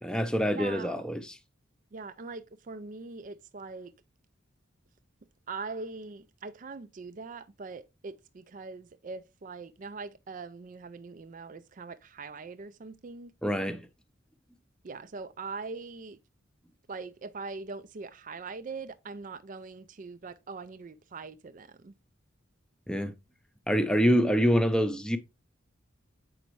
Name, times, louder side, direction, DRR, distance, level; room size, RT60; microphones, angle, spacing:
voice 1, 0.0-1.4 13.4-13.8 22.9-23.1 23.7-25.2, equal, 5° left, 0.6 m, -26 dB
voice 2, 0.5-1.0 1.9-3.9 5.5-13.3 14.8-16.2 16.9-22.0, right 4 dB, 40° right, 0.4 m, -42 dB
7.8 x 5.2 x 3.1 m
head